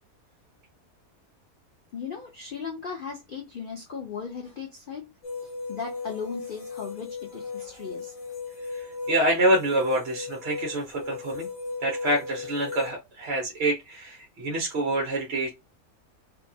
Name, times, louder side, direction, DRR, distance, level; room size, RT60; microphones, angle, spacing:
voice 1, 1.9-5.1 5.7-8.1, left 6 dB, 75° left, 0.4 m, -37 dB
sound 1, 5.2-12.9, left 4 dB, 40° left, 0.9 m, -37 dB
voice 2, 9.1-11.5 11.8-15.5, right 1 dB, 55° right, 0.8 m, -26 dB
2.7 x 2.2 x 2.6 m
omnidirectional pair, 1.6 m